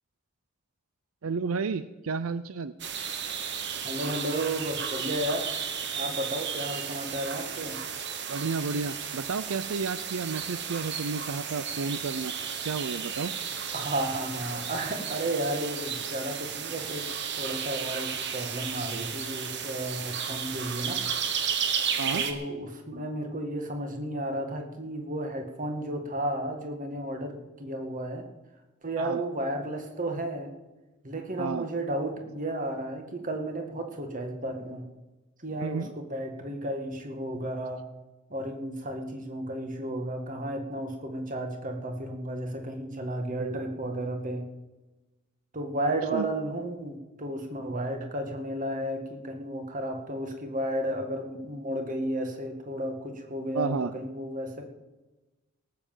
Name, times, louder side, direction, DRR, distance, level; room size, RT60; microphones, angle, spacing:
voice 1, 1.2-2.7 8.3-12.3 12.6-13.3 22.0-22.2 29.0-29.2 31.4-31.7 35.6-35.9 43.4-43.6 46.1-46.3 53.5-53.9, right 4 dB, 90° right, 14 dB, 0.5 m, -31 dB
sound 1, 2.8-22.3, right 7 dB, 60° right, 1.5 m, -33 dB
voice 2, 3.8-5.5 6.0-7.8 13.7-17.1 17.4-21.0 22.1-28.3 28.8-30.5 31.0-34.8 35.4-37.8 38.3-44.4 45.5-54.7, right 1 dB, 40° right, 4 dB, 2.0 m, -33 dB
18.0 x 7.7 x 7.3 m, 1.1 s
head